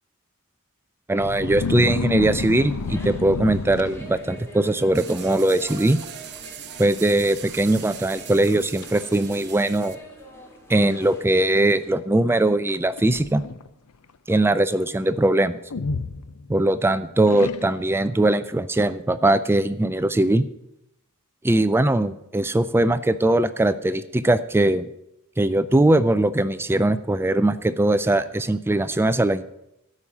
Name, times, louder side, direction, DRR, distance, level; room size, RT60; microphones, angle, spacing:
voice 1, 1.1-6.0 6.8-10.0 10.7-13.4 14.3-15.6 16.5-20.5 21.4-24.9 25.4-29.4, right 1 dB, 10° right, 13 dB, 0.4 m, -20 dB
sound 1, 1.2-4.5 5.1-5.4 5.7-6.1 6.4-6.5 7.2-7.3 7.9-8.0 8.5-8.9 9.7-9.8 12.7-13.7 15.7-16.8 17.3-18.0, left 4 dB, 85° left, 0.7 m, -30 dB
sound 2, 2.3-12.0, right 1 dB, 10° left, 2.1 m, -45 dB
sound 3, 4.9-9.9, right 10 dB, 50° right, 0.8 m, -40 dB
13.0 x 5.5 x 8.6 m, 0.84 s
head